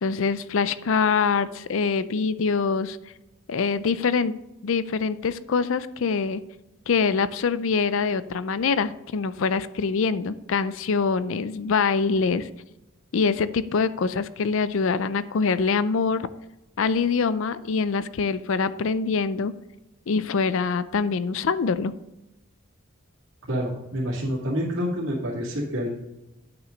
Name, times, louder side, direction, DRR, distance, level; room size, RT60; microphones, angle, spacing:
voice 1, 0.0-3.0 3.5-4.3 4.6-6.4 6.9-12.5 13.1-16.3 16.8-19.5 20.1-21.9, left 5 dB, 65° left, 15 dB, 0.4 m, -24 dB
voice 2, 23.5-25.9, equal, 65° right, -7 dB, 2.3 m, -27 dB
9.3 x 6.1 x 5.2 m, 0.95 s
head